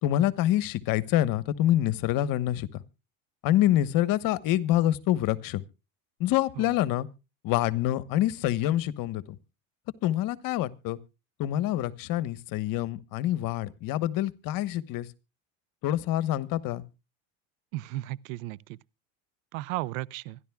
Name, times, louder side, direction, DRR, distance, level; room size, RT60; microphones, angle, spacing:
voice 1, 0.0-2.8 3.4-5.6 6.2-7.1 7.4-9.4 10.0-11.0 11.4-15.1 15.8-16.8, left 13 dB, 60° left, 1.2 m, -26 dB
voice 2, 17.7-18.8 19.5-20.4, right 17 dB, 85° right, 0.6 m, -35 dB
25.0 x 11.5 x 2.3 m
supercardioid pair, 115°, 38 cm